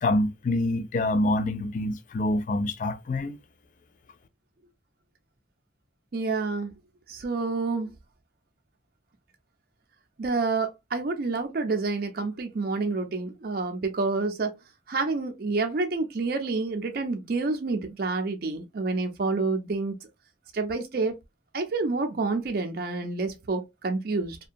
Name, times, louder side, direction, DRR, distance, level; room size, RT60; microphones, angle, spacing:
voice 1, 0.0-3.4, left 1 dB, 45° left, 0.3 m, -26 dB
voice 2, 6.1-6.7 7.1-7.9 10.2-14.6 14.9-20.1 20.5-21.2 21.5-24.4, right 3 dB, 55° right, 0.4 m, -28 dB
2.7 x 2.2 x 2.4 m
head